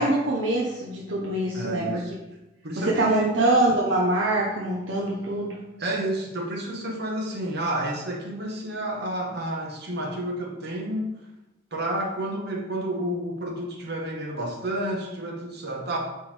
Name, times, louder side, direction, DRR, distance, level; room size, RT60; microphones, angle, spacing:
voice 1, 0.0-2.0 2.8-5.6, right 1 dB, 75° right, -3 dB, 0.8 m, -24 dB
voice 2, 1.5-2.1 2.6-3.3 5.8-11.1 11.7-16.0, right 1 dB, 60° right, 0 dB, 1.2 m, -30 dB
8.6 x 3.5 x 3.4 m, 0.99 s
head